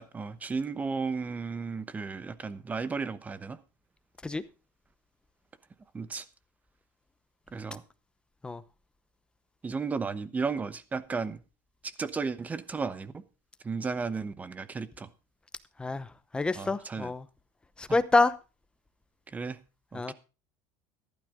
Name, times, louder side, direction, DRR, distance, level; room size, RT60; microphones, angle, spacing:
voice 1, 0.0-3.6 5.9-6.2 7.5-7.8 9.6-11.4 11.8-13.2 13.6-15.1 16.5-17.1 19.3-19.6 19.9-20.1, right 4 dB, 15° right, 1.0 m, -34 dB
voice 2, 16.3-17.3 17.8-18.3 19.9-20.1, left 3 dB, 10° left, 0.8 m, -27 dB
14.5 x 12.0 x 3.7 m
cardioid pair, 150°, 10 cm